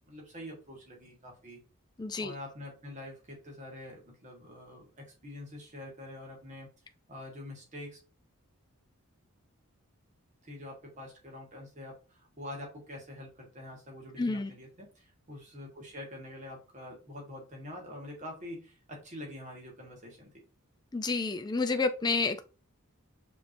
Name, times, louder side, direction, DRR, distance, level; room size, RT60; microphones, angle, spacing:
voice 1, 0.0-1.6 2.2-6.7 7.1-8.0 10.4-20.3, left 1 dB, 35° right, 0 dB, 1.5 m, -45 dB
voice 2, 2.0-2.3 14.2-14.5 20.9-22.4, left 3 dB, 20° left, 9 dB, 0.4 m, -29 dB
5.0 x 3.1 x 2.6 m, 0.34 s
head